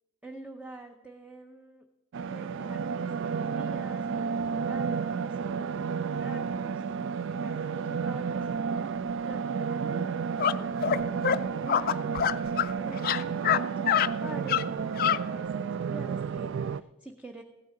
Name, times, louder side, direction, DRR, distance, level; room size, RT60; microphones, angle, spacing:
voice 1, 0.2-1.8 2.3-8.8 9.2-17.4, right 1 dB, 5° right, 4 dB, 0.6 m, -47 dB
sound 1, 2.1-16.8, right 6 dB, 65° right, 0.3 m, -31 dB
sound 2, 10.4-10.5 10.8-11.0 11.2-11.4 11.7-12.7 13.0-13.6 13.9-14.1 14.5-14.6 15.0-15.2, left 9 dB, 45° left, 0.4 m, -25 dB
16.0 x 9.3 x 3.8 m, 1.2 s
head